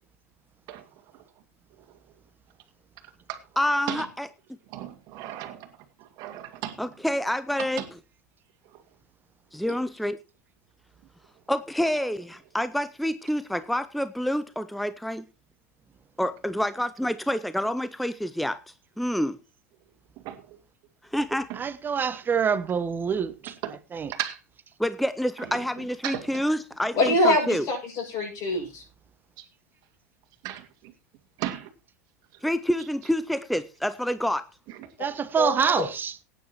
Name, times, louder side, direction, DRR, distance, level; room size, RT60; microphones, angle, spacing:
voice 1, 3.6-4.3 6.8-7.8 9.5-10.2 11.5-15.2 16.2-18.6 19.0-19.4 21.1-21.5 24.8-27.7 32.4-34.4, equal, ahead, 0.5 m, -27 dB
voice 2, 4.7-5.7 6.0-6.8 7.6-7.9 8.7-8.8 9.7-9.8 20.2-20.6 21.5-21.6 23.6-23.8 24.1-24.4 25.4-25.6 26.0-26.5 27.1-27.2 29.4-29.5 30.4-30.9 31.4-31.7 34.7-34.9, right 13 dB, 50° right, 2.2 m, -36 dB
voice 3, 21.5-24.1 35.0-36.2, right 6 dB, 25° right, 1.2 m, -26 dB
voice 4, 26.9-28.8 35.3-35.8, left 1 dB, 45° left, 6.8 m, -24 dB
18.5 x 9.6 x 3.0 m
hypercardioid pair, 90°, 8 cm